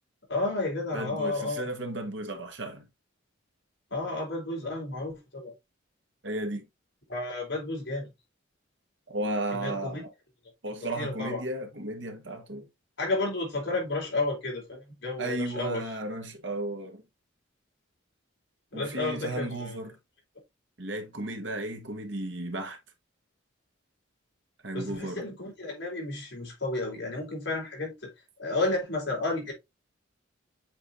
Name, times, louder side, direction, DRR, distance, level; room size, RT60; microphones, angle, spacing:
voice 1, 0.3-1.6 3.9-5.5 7.1-8.1 9.5-10.0 11.0-11.4 13.0-15.8 18.7-19.8 24.7-28.1 28.4-29.5, left 2 dB, 60° left, 4.2 m, -32 dB
voice 2, 0.9-2.9 6.2-6.7 9.1-10.1 10.6-12.7 15.2-17.0 18.7-20.0 20.8-22.8 24.6-25.3, right 1 dB, 65° right, 1.7 m, -34 dB
7.7 x 4.7 x 2.7 m
head